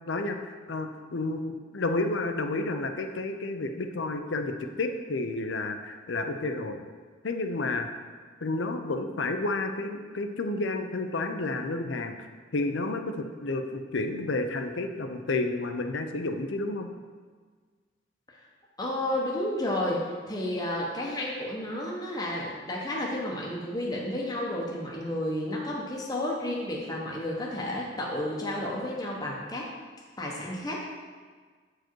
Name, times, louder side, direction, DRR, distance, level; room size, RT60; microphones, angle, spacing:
voice 1, 0.1-6.8 7.2-7.9 8.4-12.3 12.5-16.9, left 2 dB, 75° left, 6 dB, 0.6 m, -31 dB
voice 2, 18.8-29.7 30.2-30.8, left 1 dB, 20° left, -3 dB, 0.9 m, -31 dB
7.7 x 4.8 x 4.6 m, 1.5 s
head